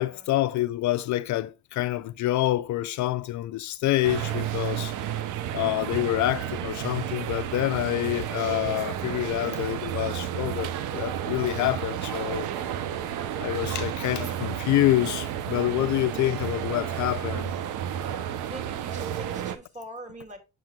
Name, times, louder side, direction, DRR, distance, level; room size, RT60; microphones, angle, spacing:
voice 1, 0.0-4.9 5.5-12.5 13.4-17.5, left 15 dB, 70° left, 0.5 m, -27 dB
sound 1, 4.0-19.6, right 10 dB, 85° right, 0.7 m, -31 dB
voice 2, 18.0-20.4, right 1 dB, 25° right, 2.3 m, -44 dB
7.4 x 6.0 x 2.2 m
cardioid pair, 90°, 30 cm